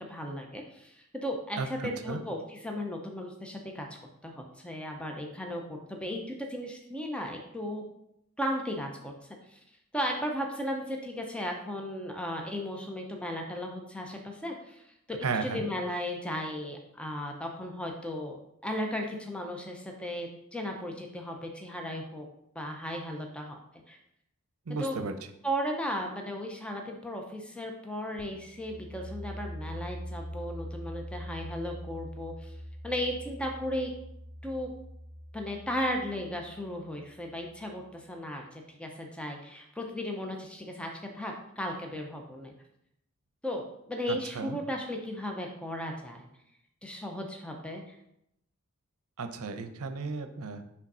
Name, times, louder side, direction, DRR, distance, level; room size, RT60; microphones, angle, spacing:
voice 1, 0.1-3.9 4.2-7.8 8.4-9.1 9.5-9.6 9.9-18.4 18.6-22.3 22.6-23.6 23.9-24.0 24.7-25.0 25.4-32.5 32.8-33.9 34.4-34.7 35.3-40.9 41.1-42.5 43.4-46.3 46.8-48.0, equal, 5° left, 2 dB, 0.5 m, -35 dB
voice 2, 1.6-2.2 15.2-15.7 24.7-25.1 44.1-44.6 49.2-50.8, right 4 dB, 75° right, 8 dB, 0.6 m, -34 dB
sound 1, 28.2-37.8, equal, 35° right, 2.2 m, -43 dB
5.0 x 3.6 x 5.4 m, 0.80 s
head